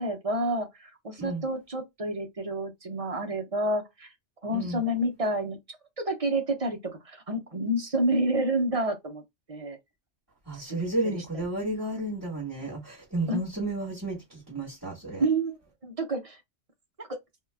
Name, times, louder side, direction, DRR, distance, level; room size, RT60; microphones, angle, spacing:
voice 1, 0.0-4.1 4.4-5.6 6.0-9.2 9.5-9.8 10.5-10.8 11.3-11.4 13.3-13.4 15.2-16.4 17.0-17.2, right 1 dB, 35° right, 0.7 m, -29 dB
voice 2, 10.5-15.2, right 2 dB, 15° right, 1.4 m, -32 dB
2.8 x 2.3 x 3.3 m
omnidirectional pair, 1.2 m